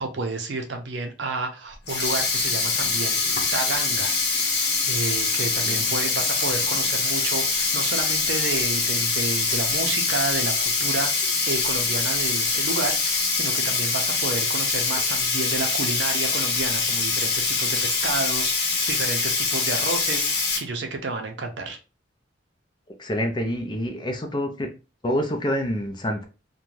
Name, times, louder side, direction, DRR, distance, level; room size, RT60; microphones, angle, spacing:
voice 1, 0.0-4.1 4.8-21.8, right 3 dB, 65° right, 4 dB, 0.6 m, -31 dB
Sink (filling or washing), 1.7-20.6, left 4 dB, 55° left, 0.8 m, -24 dB
voice 2, 23.0-24.7 25.0-26.2, equal, 25° left, 4 dB, 0.4 m, -27 dB
2.6 x 2.2 x 3.1 m, 0.31 s
head